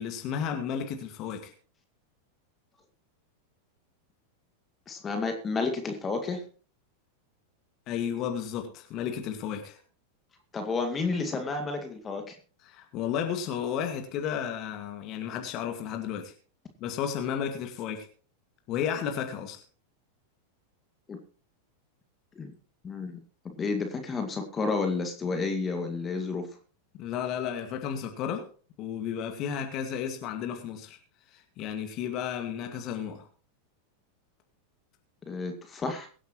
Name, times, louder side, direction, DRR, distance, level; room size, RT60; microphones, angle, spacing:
voice 1, 0.0-1.5 7.9-9.8 12.6-16.3 16.8-18.1 18.7-19.6 26.9-28.5 28.8-31.0 31.3-33.3, left 8 dB, 40° left, 4 dB, 2.1 m, -33 dB
voice 2, 4.9-6.4 10.5-12.4 21.1-21.2 22.4-22.5 22.8-23.2 23.6-26.5 35.3-36.1, left 4 dB, 20° left, 6 dB, 2.1 m, -31 dB
23.0 x 8.3 x 3.1 m, 0.39 s
figure-of-eight pair, 90°, 0 cm